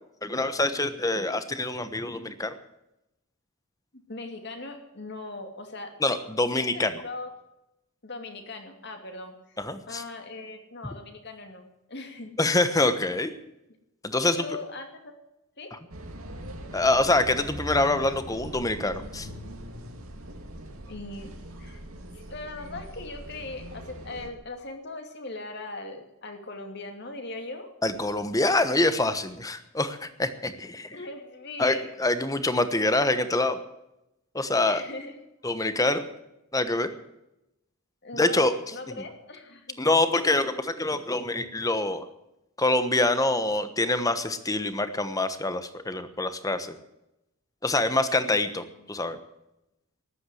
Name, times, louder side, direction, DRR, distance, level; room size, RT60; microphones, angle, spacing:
voice 1, 0.2-2.5 6.0-7.0 9.6-10.0 12.4-13.3 14.0-14.4 15.7-15.8 16.7-19.3 27.8-31.0 31.6-33.6 34.3-34.8 35.4-36.0 36.5-36.9 38.1-38.5 38.9-39.0 39.8-42.1 42.6-46.8 47.6-49.2, left 2 dB, 15° left, 11 dB, 1.1 m, -25 dB
voice 2, 4.1-5.9 6.5-7.3 8.0-9.3 9.9-12.3 14.2-15.1 15.6-15.7 20.9-21.3 21.6-21.8 22.1-27.7 30.9-31.9 34.6-35.2 38.0-38.4 38.7-39.8, left 2 dB, 50° left, 5 dB, 2.6 m, -39 dB
sound 1, 15.9-24.3, right 1 dB, 80° right, 2.7 m, -41 dB
14.0 x 11.5 x 7.8 m, 0.89 s
head